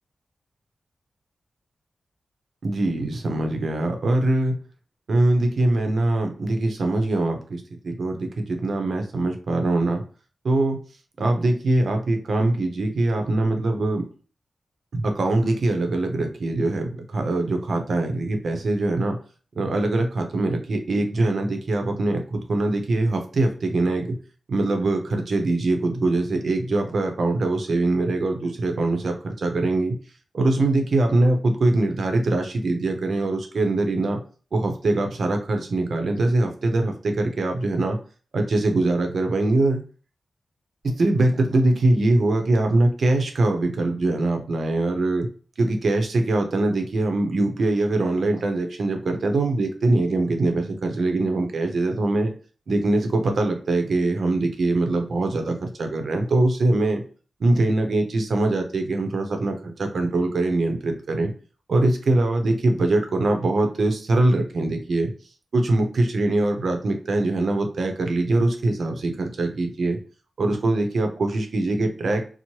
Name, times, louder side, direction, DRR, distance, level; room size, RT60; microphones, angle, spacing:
voice 1, 2.6-4.6 5.1-10.0 10.4-10.8 11.2-14.0 14.9-19.2 19.5-24.2 24.5-30.0 30.3-34.2 34.5-38.0 38.3-39.8 40.8-45.3 45.6-52.3 52.7-57.0 57.4-61.3 61.7-65.1 65.5-70.0 70.4-72.3, right 2 dB, 70° right, 4 dB, 0.6 m, -22 dB
3.0 x 2.0 x 2.8 m, 0.39 s
wide cardioid pair, 95°, 0 cm